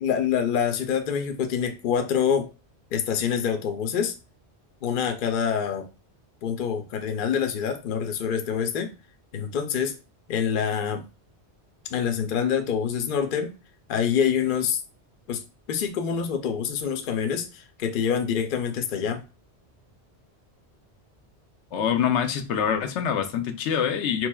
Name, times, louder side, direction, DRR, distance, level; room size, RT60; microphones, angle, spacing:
voice 1, 0.0-2.5 2.9-4.2 4.8-5.9 6.4-8.9 9.3-10.0 10.3-11.0 11.9-13.5 13.9-14.8 15.3-15.4 15.7-19.2, left 7 dB, 60° left, 0.6 m, -26 dB
voice 2, 21.7-24.3, left 8 dB, 90° left, 0.9 m, -25 dB
3.8 x 3.0 x 2.2 m
omnidirectional pair, 1.1 m